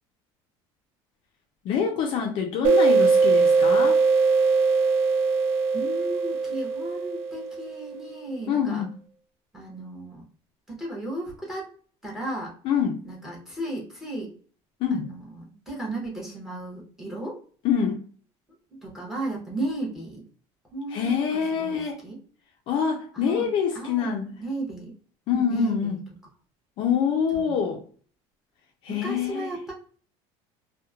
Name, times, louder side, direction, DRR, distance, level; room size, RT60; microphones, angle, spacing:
voice 1, 1.6-4.0 8.5-8.9 12.6-13.0 14.8-15.1 17.6-18.1 20.9-22.0 22.7-24.3 25.3-26.0 26.8-27.8 28.8-29.5, left 7 dB, 45° left, 3 dB, 0.3 m, -25 dB
sound 1, 2.6-8.0, right 4 dB, 70° right, 0.4 m, -21 dB
voice 2, 5.7-8.8 9.5-10.3 10.7-11.7 12.0-12.5 13.0-14.3 14.9-17.4 18.7-20.2 20.7-22.2 23.1-23.5 23.7-25.0 25.3-26.0 27.3-27.6 28.9-29.7, right 2 dB, 5° right, -2 dB, 0.8 m, -34 dB
2.9 x 2.0 x 2.3 m, 0.43 s
cardioid pair, 175°, 12 cm